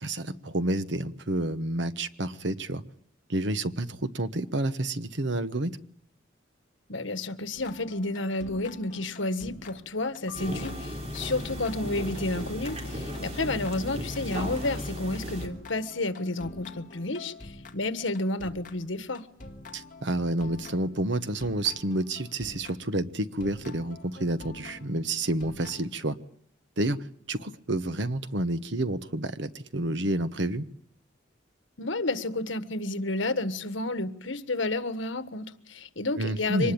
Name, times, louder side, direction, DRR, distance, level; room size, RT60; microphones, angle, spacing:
voice 1, 0.0-2.8 3.3-5.7 19.7-26.1 26.8-27.0 27.3-30.6 36.2-36.7, right 1 dB, 70° right, 12 dB, 1.2 m, -29 dB
voice 2, 6.9-19.3 31.8-36.7, left 2 dB, 85° left, 11 dB, 1.5 m, -31 dB
sound 1, 7.5-23.0 23.4-25.9, left 2 dB, 45° left, 1.9 m, -47 dB
Keyboard (musical), 10.3-12.8, left 4 dB, 20° left, 4.4 m, -52 dB
sound 2, 10.3-15.5, equal, 35° right, 3.4 m, -36 dB
24.5 x 20.0 x 8.7 m, 0.64 s
head